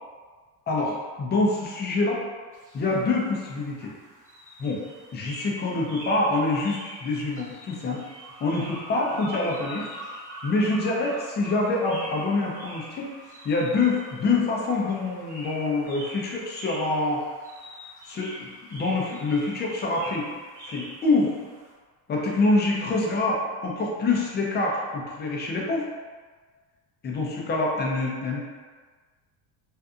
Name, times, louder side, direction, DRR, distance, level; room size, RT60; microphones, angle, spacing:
voice 1, 0.7-2.2 2.7-3.9 4.6-4.8 5.1-8.1 8.4-9.9 10.4-13.1 13.4-17.2 18.0-20.3 20.6-21.4 22.1-25.8 27.0-28.4, left 2 dB, 25° left, -2 dB, 0.5 m, -26 dB
sound 1, 2.5-21.7, equal, 20° right, 0.9 m, -43 dB
2.6 x 2.5 x 2.3 m, 1.5 s
cardioid pair, 115°, 44 cm